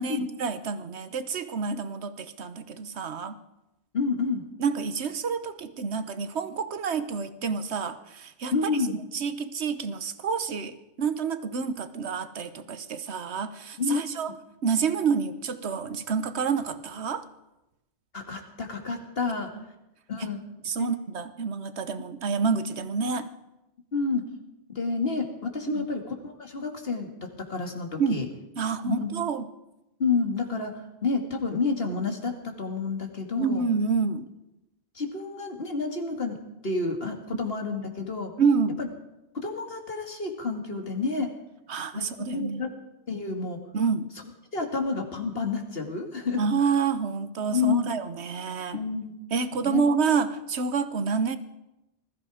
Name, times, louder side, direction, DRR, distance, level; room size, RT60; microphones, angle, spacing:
voice 1, 0.0-3.4 4.6-8.5 9.1-14.3 14.6-17.2 19.6-19.7 20.6-23.3 25.7-25.9 28.0-28.3 28.6-29.5 33.4-34.3 38.4-38.8 41.7-42.6 43.7-44.1 46.3-48.8 49.3-51.4, right 5 dB, 70° right, 11 dB, 1.3 m, -28 dB
voice 2, 3.9-4.4 8.5-9.0 13.8-14.0 18.1-19.5 20.1-20.4 20.8-20.9 23.9-24.2 24.7-28.3 28.9-29.1 30.0-33.6 34.9-36.4 36.6-38.3 38.8-38.9 39.3-41.3 41.9-42.1 42.3-42.7 43.1-43.6 44.5-46.4 47.5-47.9 48.7-49.2 49.6-49.8, left 4 dB, 55° left, 4 dB, 2.3 m, -29 dB
20.5 x 14.0 x 4.9 m, 0.93 s
omnidirectional pair, 1.2 m